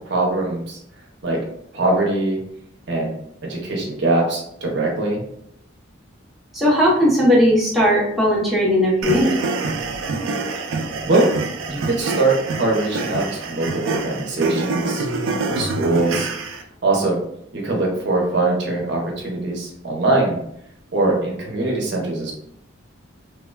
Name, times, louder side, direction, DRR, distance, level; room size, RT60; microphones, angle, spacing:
voice 1, 0.1-0.8 1.2-1.4 1.7-2.4 2.9-3.1 3.4-5.2 11.0-11.3 11.7-15.1 15.5-16.3 16.8-17.2 17.5-20.4 20.9-22.3, right 2 dB, 60° right, -2 dB, 0.7 m, -22 dB
voice 2, 6.5-9.3, equal, ahead, -7 dB, 0.7 m, -17 dB
sound 1, 9.0-16.6, right 3 dB, 85° right, 0.3 m, -26 dB
3.1 x 2.1 x 2.2 m, 0.72 s
head